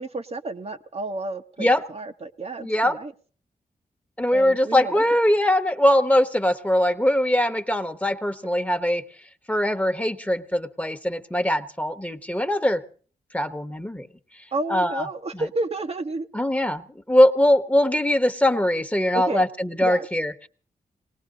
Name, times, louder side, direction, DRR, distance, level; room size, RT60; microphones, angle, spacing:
voice 1, 0.0-3.1 4.3-5.0 14.5-16.3 19.1-19.4 19.8-20.1, right 2 dB, 45° right, 6 dB, 1.0 m, -31 dB
voice 2, 2.6-3.0 4.2-9.0 9.5-12.8 13.3-14.1 14.7-15.1 15.3-15.5 16.3-20.5, left 1 dB, 10° left, 9 dB, 1.2 m, -21 dB
20.0 x 18.5 x 3.9 m, 0.42 s
cardioid pair, 60°, 15 cm